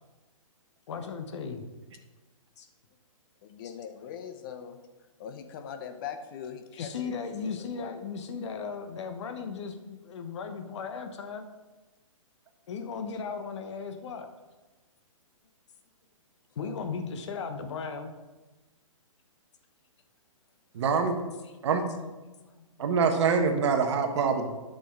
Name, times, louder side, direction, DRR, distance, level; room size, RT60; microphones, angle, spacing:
voice 1, 0.9-1.7 2.6-2.7 3.6-3.7 6.7-11.5 12.7-14.3 16.5-18.1 22.2-22.8, left 5 dB, 55° left, 7 dB, 1.1 m, -36 dB
voice 2, 3.4-4.8 5.2-7.1 7.7-7.9 16.6-16.8, left 8 dB, 40° left, 8 dB, 0.8 m, -41 dB
voice 3, 20.7-21.2 21.6-21.9 22.8-24.5, right 5 dB, 55° right, 6 dB, 1.3 m, -25 dB
9.0 x 6.1 x 4.7 m, 1.2 s
hypercardioid pair, 135°, 18 cm